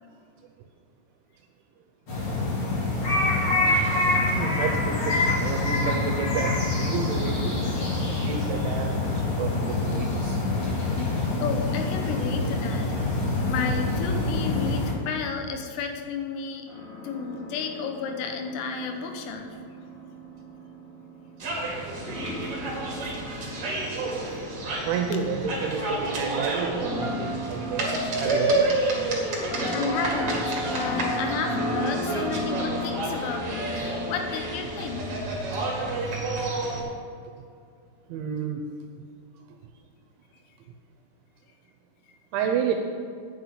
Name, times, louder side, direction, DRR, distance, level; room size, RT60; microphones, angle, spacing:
sound 1, 2.1-14.9, left 2 dB, 45° left, 1.9 m, -25 dB
voice 1, 4.4-7.6 8.2-10.4 23.3-23.5 24.9-28.8 29.5-29.7 38.1-38.6 42.3-42.7, right 6 dB, 80° right, 4 dB, 2.7 m, -30 dB
voice 2, 11.4-13.0 13.4-16.7 17.0-19.6 29.7-35.1, left 5 dB, 85° left, 4 dB, 3.8 m, -32 dB
sound 2, 16.7-21.5 22.0-35.9, left 1 dB, 20° left, 2.8 m, -35 dB
sound 3, 21.4-36.8, right 2 dB, 55° right, 1.6 m, -30 dB
9.1 x 6.8 x 8.0 m, 2.3 s
omnidirectional pair, 6.0 m